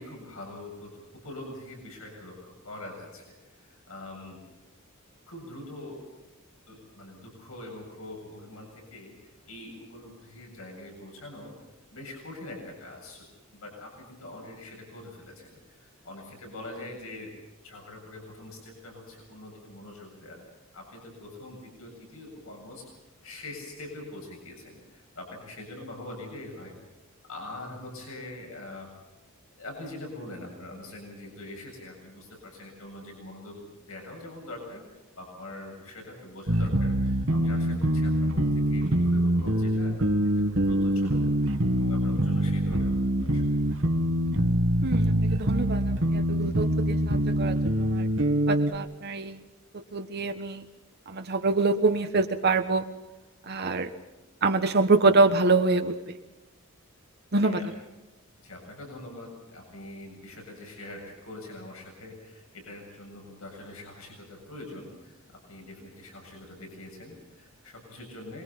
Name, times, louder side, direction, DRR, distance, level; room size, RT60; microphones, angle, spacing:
voice 1, 0.0-4.4 5.3-6.0 6.7-11.5 11.9-13.3 13.5-17.4 17.6-20.5 20.7-22.9 23.2-26.8 27.3-28.9 29.6-33.6 33.9-39.9 40.2-41.3 41.7-43.6 57.4-57.7 58.4-68.4, left 2 dB, 70° left, 1 dB, 7.6 m, -43 dB
sound 1, 36.5-48.7, right 1 dB, 65° right, 2.1 m, -24 dB
voice 2, 44.8-48.1 48.5-49.4 49.7-50.6 51.1-52.9 53.5-53.9 54.4-56.1 57.3-57.6, right 3 dB, 50° right, 6 dB, 1.3 m, -25 dB
27.0 x 22.0 x 5.8 m, 1.0 s
head